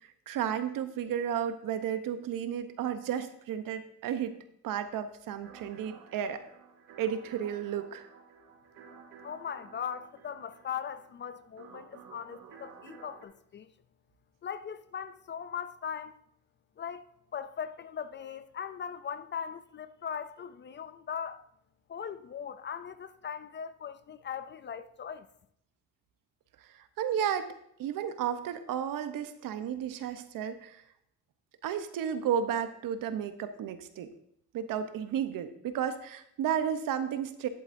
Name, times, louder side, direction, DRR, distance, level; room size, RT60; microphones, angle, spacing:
voice 1, 0.3-4.4 4.6-6.4 7.0-8.1 26.7-27.5 27.8-30.8 31.6-34.1 34.5-37.5, right 9 dB, 70° right, 0.9 m, -33 dB
sound 1, 5.4-13.2, right 5 dB, 85° right, 1.5 m, -53 dB
voice 2, 9.2-13.7 14.4-16.2 16.8-17.0 17.3-21.4 21.9-25.3, left 8 dB, 35° left, 0.4 m, -39 dB
11.5 x 7.8 x 2.6 m
cardioid pair, 110°, 35 cm